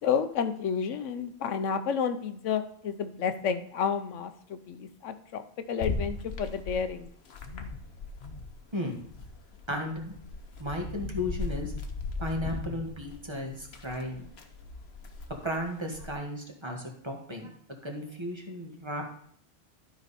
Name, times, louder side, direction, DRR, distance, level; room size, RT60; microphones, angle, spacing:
voice 1, 0.0-7.1, left 7 dB, 90° left, 9 dB, 1.1 m, -31 dB
sound 1, 5.8-8.6 8.9-16.1, left 4 dB, 60° left, 1.2 m, -38 dB
voice 2, 9.7-10.2 10.6-11.7 12.2-14.2 15.4-17.5 17.8-19.0, left 1 dB, 25° right, 1 dB, 1.5 m, -34 dB
12.0 x 5.4 x 4.1 m, 0.63 s
omnidirectional pair, 1.2 m